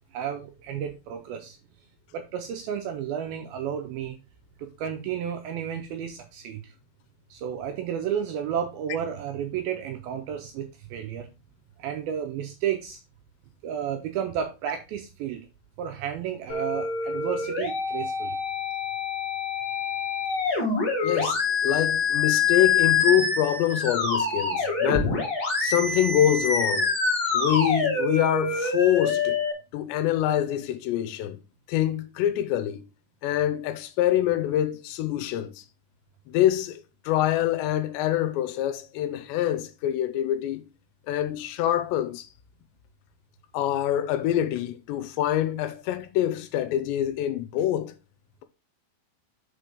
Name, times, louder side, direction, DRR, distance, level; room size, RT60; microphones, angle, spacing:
voice 1, 0.1-1.6 2.1-4.2 4.6-6.7 7.3-11.3 11.8-13.0 13.6-15.5 15.8-18.4, right 9 dB, 80° right, 2.2 m, -32 dB
sound 1, 16.5-29.5, left 4 dB, 35° left, 1.8 m, -26 dB
voice 2, 21.0-25.2 25.6-26.9 27.3-29.4 29.7-31.4 31.7-32.8 33.2-35.6 36.3-40.7 41.1-42.3 43.5-47.9, left 12 dB, 85° left, 3.0 m, -25 dB
6.4 x 4.5 x 5.1 m
omnidirectional pair, 5.0 m